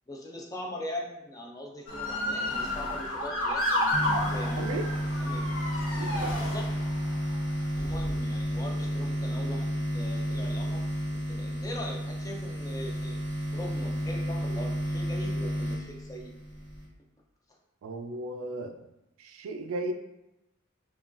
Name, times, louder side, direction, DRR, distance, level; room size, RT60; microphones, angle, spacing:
voice 1, 0.1-3.8 4.3-4.6 5.2-5.5 6.3-6.7 7.7-13.2 13.5-16.3, left 1 dB, 15° left, 0 dB, 0.3 m, -41 dB
Motor vehicle (road) / Siren, 1.9-7.1 7.7-8.2, left 1 dB, 70° left, 0.8 m, -31 dB
sound 1, 3.9-16.9, equal, 85° left, 1.1 m, -31 dB
voice 2, 4.6-5.0 6.0-6.3 17.8-18.8 19.2-19.9, right 2 dB, 75° right, 7 dB, 0.3 m, -35 dB
3.0 x 2.2 x 2.5 m, 0.90 s
head